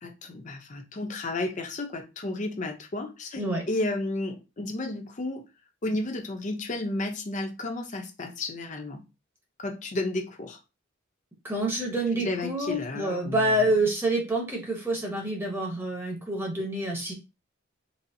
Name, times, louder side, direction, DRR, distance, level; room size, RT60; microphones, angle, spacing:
voice 1, 0.0-5.4 5.8-9.0 9.6-10.6 12.2-13.5, left 2 dB, 40° left, 0.6 m, -32 dB
voice 2, 11.4-17.1, right 1 dB, 10° right, 0.9 m, -27 dB
4.0 x 2.0 x 2.6 m
head